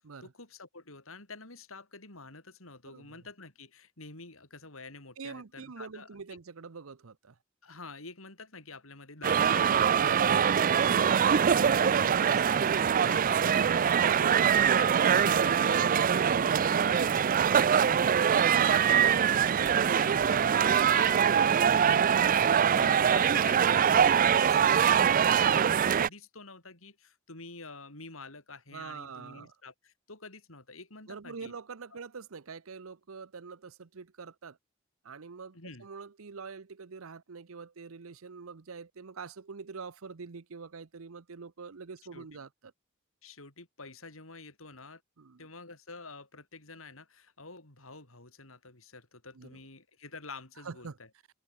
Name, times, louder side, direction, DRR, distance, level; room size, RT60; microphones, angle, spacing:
voice 1, 0.2-6.1 7.6-10.5 11.0-14.5 14.8-22.2 22.7-31.5 31.9-32.0 35.5-35.9 42.1-42.3 43.2-45.0 45.4-51.1, left 3 dB, 80° left, 6.3 m, -47 dB
voice 2, 2.9-3.2 5.2-7.4 10.0-10.3 14.0-14.8 21.4-22.3 28.7-29.5 31.1-34.6 35.0-42.7 45.2-45.5 49.3-49.6 50.6-51.0, right 5 dB, 85° right, 0.8 m, -45 dB
sound 1, 9.2-26.1, right 8 dB, 40° right, 0.4 m, -23 dB
head